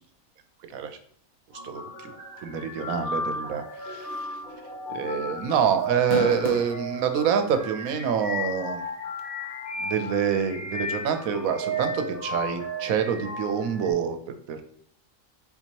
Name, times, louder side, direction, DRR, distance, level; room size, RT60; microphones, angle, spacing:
sound 1, 1.5-13.9, equal, 40° left, 1.4 m, -35 dB
voice 1, 1.6-2.1 2.4-4.4 4.9-8.8 9.8-14.2 14.5-14.6, right 7 dB, 85° right, 7 dB, 1.1 m, -26 dB
sound 2, 4.1-4.4 4.7-4.8 5.8-6.8 7.5-7.6 9.2-9.3, left 3 dB, 85° left, 0.4 m, -31 dB
4.0 x 2.9 x 4.4 m, 0.63 s
omnidirectional pair, 1.5 m